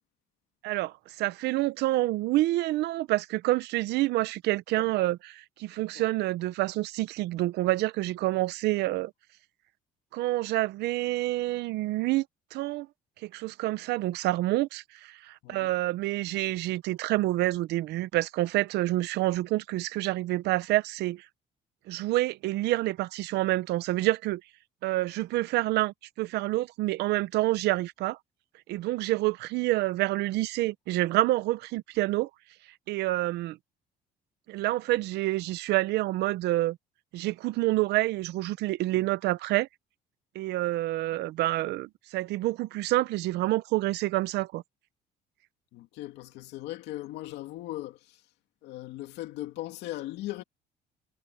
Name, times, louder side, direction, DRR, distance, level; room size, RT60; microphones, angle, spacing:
voice 1, 0.6-9.1 10.1-12.3 12.5-12.9 13.2-21.3 21.9-24.4 24.8-28.2 28.7-32.3 32.9-33.6 34.5-36.8 37.1-39.7 40.3-44.6, right 17 dB, 80° right, 0.8 m, -28 dB
voice 2, 45.7-48.2 48.6-50.4, left 16 dB, 90° left, 2.6 m, -38 dB
cardioid pair, 110°, 17 cm